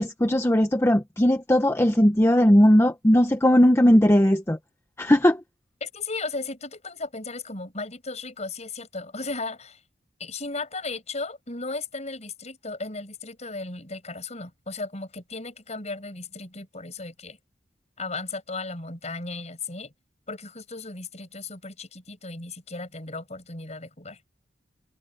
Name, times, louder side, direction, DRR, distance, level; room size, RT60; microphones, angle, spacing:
voice 1, 0.0-4.6 5.0-5.4, equal, 15° left, 0.9 m, -18 dB
voice 2, 5.8-9.8 10.2-17.4 18.0-19.9 20.3-24.2, left 3 dB, 35° left, 6.7 m, -35 dB
head